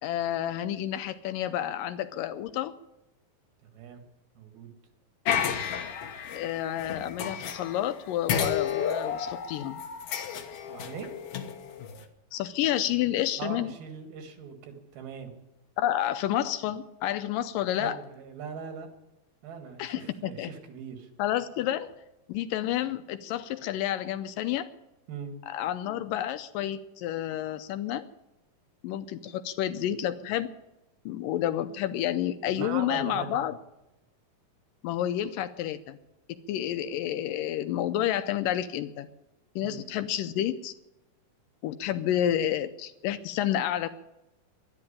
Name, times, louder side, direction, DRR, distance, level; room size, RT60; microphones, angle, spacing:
voice 1, 0.0-2.7 6.4-9.8 12.3-13.7 15.8-18.0 19.8-20.5 21.2-21.9 22.3-24.7 25.5-28.1 28.8-30.5 31.1-33.6 34.8-36.0 36.5-39.1 39.6-40.7 41.6-43.9, left 11 dB, 80° left, 11 dB, 2.1 m, -30 dB
voice 2, 3.6-4.0 4.4-4.7 10.7-11.1 13.4-15.3 17.8-18.9 19.4-21.1 25.1-25.4 32.5-33.4 39.6-39.9, right 6 dB, 90° right, 6 dB, 3.7 m, -40 dB
sound 1, 5.3-7.9 8.3-12.0, left 8 dB, 60° left, 1.6 m, -32 dB
12.5 x 10.5 x 10.0 m, 0.93 s
omnidirectional pair, 4.2 m